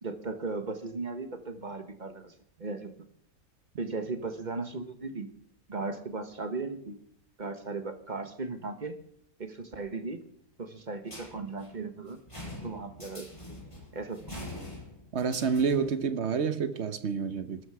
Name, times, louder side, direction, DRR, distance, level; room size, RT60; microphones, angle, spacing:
voice 1, 0.0-2.9 3.8-5.3 5.7-7.0 7.4-9.0 9.4-10.2 10.6-12.2 12.6-13.6 13.9-14.5, right 3 dB, 30° right, 8 dB, 1.4 m, -37 dB
sound 1, 11.1-16.0, left 1 dB, 20° left, 6.0 m, -45 dB
voice 2, 15.1-17.6, right 6 dB, 50° right, 11 dB, 1.2 m, -28 dB
19.5 x 12.5 x 4.9 m, 0.63 s
omnidirectional pair, 1.5 m